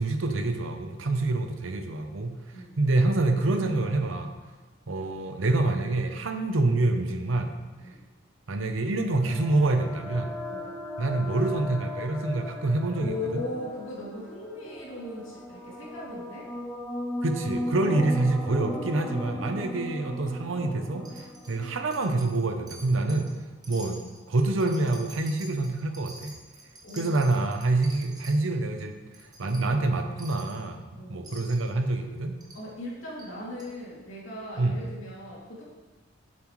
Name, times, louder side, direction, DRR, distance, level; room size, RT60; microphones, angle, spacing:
voice 1, 0.0-2.4 2.8-4.3 4.9-7.6 8.5-10.4 11.0-13.4 17.2-23.3 23.7-24.0 24.3-26.4 26.9-28.9 29.4-30.8 31.1-32.3 34.6-34.8, right 2 dB, 80° right, 6 dB, 0.7 m, -26 dB
sound 1, 9.0-22.7, left 1 dB, ahead, 0.7 m, -38 dB
voice 2, 12.9-16.5 17.8-18.2 19.6-19.9 23.0-23.3 26.8-27.2 30.9-31.3 32.5-35.6, left 1 dB, 80° left, -6 dB, 2.7 m, -38 dB
Wind chime, 21.0-21.6 21.9-22.4 22.7-23.3 23.6-28.4 28.8-28.9 29.1-29.6 30.2-30.6 31.2-31.7 32.4-32.6 33.2-33.3 33.6-33.7, right 2 dB, 20° right, 1.0 m, -47 dB
7.8 x 7.3 x 3.1 m, 1.3 s
head